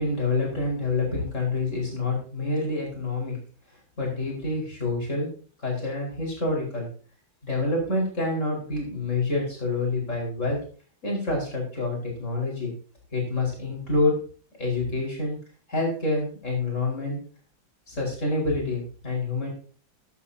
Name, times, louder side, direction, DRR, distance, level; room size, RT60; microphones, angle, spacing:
voice 1, 0.0-3.4 4.0-5.3 5.6-6.9 7.4-10.6 11.0-12.7 13.1-14.2 14.6-15.4 15.7-17.2 17.9-19.5, left 2 dB, 40° left, -2 dB, 5.3 m, -27 dB
14.5 x 11.0 x 2.8 m, 0.40 s
omnidirectional pair, 2.1 m